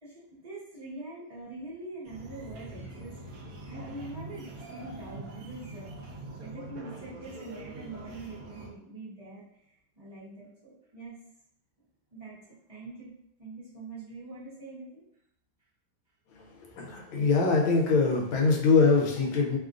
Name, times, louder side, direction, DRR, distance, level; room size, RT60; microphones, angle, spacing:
voice 1, 0.0-3.2 3.6-5.9 6.4-11.1 12.1-12.4 12.7-13.1 13.4-15.0, right 2 dB, 30° right, -10 dB, 0.7 m, -44 dB
sound 1, 2.0-8.7, right 2 dB, 70° right, 0.8 m, -43 dB
voice 2, 16.8-19.6, left 4 dB, 85° left, 0 dB, 1.4 m, -23 dB
3.4 x 2.4 x 2.4 m, 0.75 s
omnidirectional pair, 2.2 m